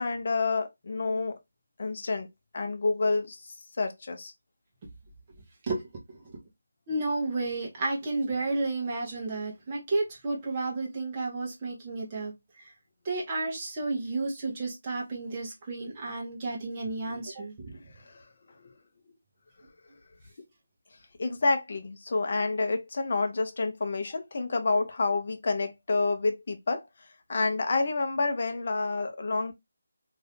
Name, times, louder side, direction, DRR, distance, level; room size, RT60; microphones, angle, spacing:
voice 1, 0.0-1.4 1.8-2.3 2.5-3.4 3.8-4.3 18.6-18.7 21.2-26.8 27.3-29.5, left 3 dB, 40° left, 0.7 m, -28 dB
voice 2, 6.9-12.3 13.0-17.8, right 2 dB, 20° right, 0.9 m, -32 dB
2.7 x 2.6 x 3.4 m
figure-of-eight pair, 175°, 0 cm